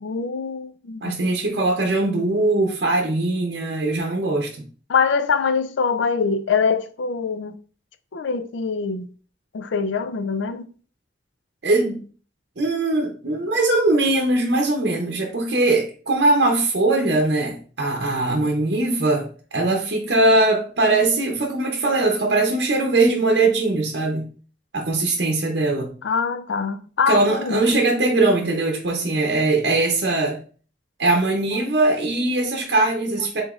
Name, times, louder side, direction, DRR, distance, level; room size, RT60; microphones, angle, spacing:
voice 1, 0.0-1.2 4.9-7.6 8.1-9.1 9.5-10.7 26.0-27.7, left 5 dB, 85° left, 0.4 m, -23 dB
voice 2, 1.0-4.5 11.6-12.0 12.6-24.3 24.7-25.9 27.1-30.4 31.0-33.4, right 2 dB, 60° right, 0.7 m, -21 dB
4.9 x 3.9 x 2.4 m
head